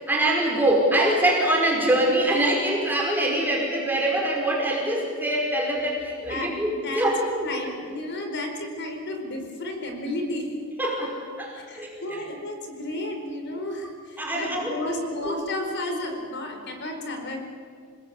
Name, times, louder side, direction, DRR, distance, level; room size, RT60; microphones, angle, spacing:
voice 1, 0.1-7.5 10.8-12.2 14.2-14.7, right 1 dB, 10° right, -2 dB, 5.1 m, -24 dB
voice 2, 6.2-7.1 7.4-10.5 11.6-17.4, left 1 dB, 55° left, 4 dB, 4.6 m, -32 dB
28.0 x 20.0 x 8.8 m, 2.1 s
head